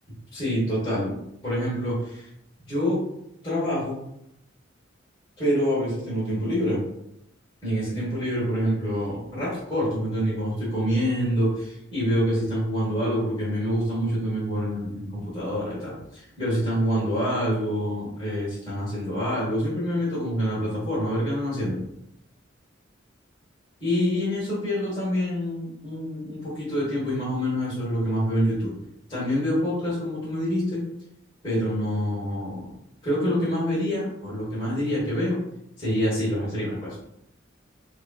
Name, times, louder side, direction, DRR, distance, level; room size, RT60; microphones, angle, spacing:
voice 1, 0.3-2.3 2.7-3.0 3.4-4.0 5.4-6.8 7.6-21.8 23.8-28.7 29.1-30.8 31.4-32.7 33.0-35.4 35.8-37.0, equal, 25° left, -9 dB, 1.0 m, -26 dB
3.0 x 2.5 x 2.2 m, 0.79 s
head